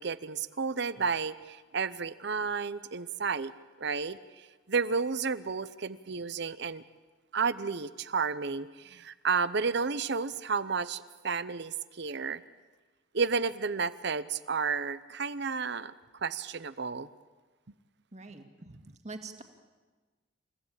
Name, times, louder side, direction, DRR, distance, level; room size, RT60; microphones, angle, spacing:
voice 1, 0.0-3.5 3.8-6.8 7.3-12.4 13.1-15.9 16.2-17.1, right 5 dB, 60° right, 15 dB, 0.8 m, -32 dB
voice 2, 18.1-18.8 19.0-19.4, right 3 dB, 40° right, 5 dB, 2.2 m, -44 dB
29.5 x 15.5 x 8.9 m, 1.3 s
head